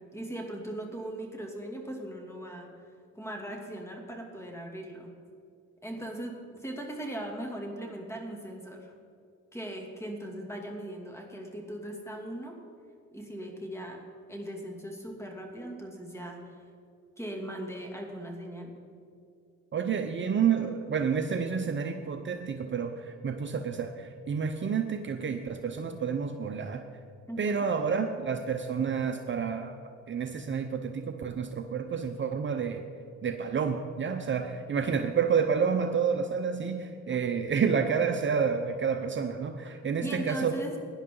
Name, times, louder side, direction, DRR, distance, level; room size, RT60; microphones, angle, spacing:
voice 1, 0.0-2.7 3.1-5.2 5.8-8.9 9.5-12.6 13.1-14.0 14.3-16.6 17.2-18.8 27.3-27.7 40.0-40.8, right 1 dB, 10° left, 1 dB, 2.6 m, -39 dB
voice 2, 19.7-26.8 27.4-29.8 30.1-32.9 33.2-40.5, right 6 dB, 40° right, 6 dB, 0.8 m, -29 dB
17.0 x 10.5 x 3.9 m, 2.5 s
cardioid pair, 90°, 30 cm